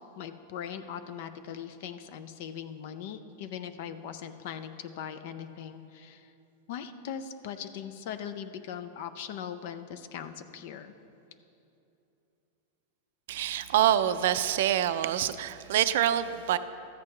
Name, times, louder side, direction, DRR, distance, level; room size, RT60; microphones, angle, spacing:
voice 1, 0.0-6.3 6.7-10.9, left 8 dB, 60° left, 9 dB, 0.5 m, -40 dB
voice 2, 13.3-16.6, right 11 dB, 70° right, 12 dB, 0.4 m, -26 dB
13.5 x 8.2 x 3.2 m, 2.9 s
supercardioid pair, 145°, 0 cm